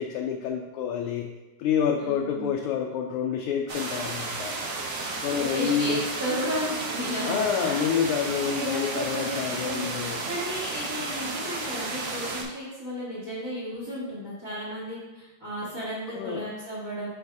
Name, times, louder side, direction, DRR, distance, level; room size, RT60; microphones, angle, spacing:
voice 1, 0.0-1.3 1.6-4.6 5.2-6.1 7.2-10.2 16.1-16.5, left 7 dB, 85° left, 1 dB, 1.5 m, -28 dB
voice 2, 2.0-2.5 5.4-8.1 8.4-9.8 10.3-17.1, equal, 15° right, -10 dB, 1.3 m, -34 dB
sound 1, 3.7-12.4, right 3 dB, 55° right, 0.9 m, -33 dB
7.9 x 5.5 x 2.7 m, 1.1 s
omnidirectional pair, 2.4 m